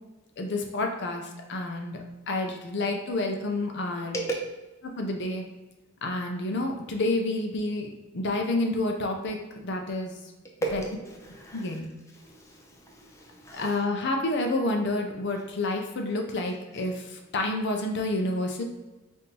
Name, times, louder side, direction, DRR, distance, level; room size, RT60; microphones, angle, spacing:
voice 1, 0.4-2.0 2.3-4.1 4.8-5.4 6.0-7.9 8.1-9.4 9.6-10.1 10.7-10.8 11.5-11.9 13.5-16.9 17.3-18.6, left 2 dB, 55° left, 3 dB, 0.5 m, -29 dB
voice 2, 10.6-11.8 12.1-13.8 15.3-15.4, right 2 dB, 15° left, -1 dB, 0.5 m, -36 dB
5.3 x 2.6 x 2.8 m, 1.1 s
head